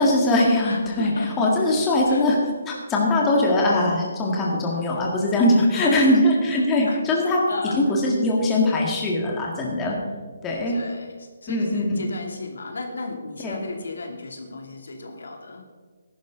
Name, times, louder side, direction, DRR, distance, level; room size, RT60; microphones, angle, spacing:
voice 1, 0.0-1.1 1.4-2.4 2.7-7.4 7.7-10.0 10.4-10.8 11.5-12.0 13.4-13.6, left 1 dB, 15° left, -2 dB, 1.9 m, -21 dB
voice 2, 0.7-1.5 2.1-2.3 4.7-4.8 5.7-6.2 6.5-7.8 10.7-15.6, left 3 dB, 80° left, 2 dB, 2.7 m, -34 dB
14.5 x 11.5 x 3.8 m, 1.5 s
hypercardioid pair, 165°, 0 cm